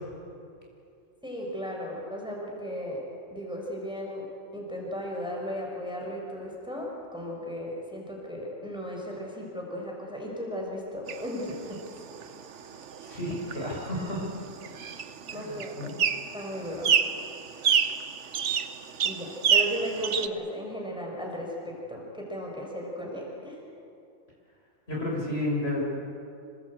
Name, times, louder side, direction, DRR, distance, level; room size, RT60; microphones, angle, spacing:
voice 1, 1.2-3.0 3.3-4.3 4.5-11.8 15.3-15.9 16.3-17.0 19.0-23.6, equal, 5° right, -2 dB, 5.4 m, -35 dB
sound 1, 11.1-20.3, right 7 dB, 60° right, 1.2 m, -29 dB
voice 2, 13.0-14.2 15.3-15.9 24.9-25.8, left 1 dB, 50° left, -3 dB, 6.1 m, -31 dB
27.0 x 19.5 x 8.5 m, 2.6 s
omnidirectional pair, 1.4 m